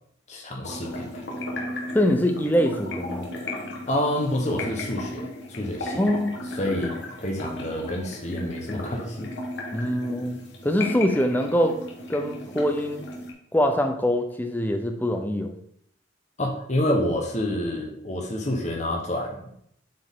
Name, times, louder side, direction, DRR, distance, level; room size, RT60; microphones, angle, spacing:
voice 1, 0.3-1.3 3.9-6.0 6.6-9.3 16.4-19.5, left 1 dB, 35° left, 1 dB, 1.0 m, -28 dB
sound 1, 0.6-13.3, left 1 dB, 60° left, 1.3 m, -35 dB
voice 2, 1.9-3.3 6.0-6.5 9.7-11.8 12.1-13.0 13.5-15.5, equal, 10° left, 5 dB, 0.6 m, -24 dB
7.7 x 4.4 x 3.6 m, 0.69 s
head